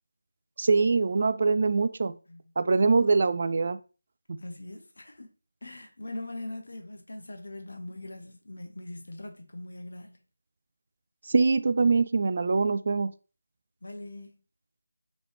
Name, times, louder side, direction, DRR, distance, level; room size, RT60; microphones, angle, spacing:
voice 1, 0.6-2.1 2.6-3.8 11.3-13.1, right 4 dB, 45° right, 0.3 m, -23 dB
voice 2, 2.7-3.1 4.4-5.3 5.6-10.2 13.8-14.4, left 1 dB, 65° left, 1.1 m, -41 dB
5.2 x 3.2 x 3.0 m
figure-of-eight pair, 165°, 0 cm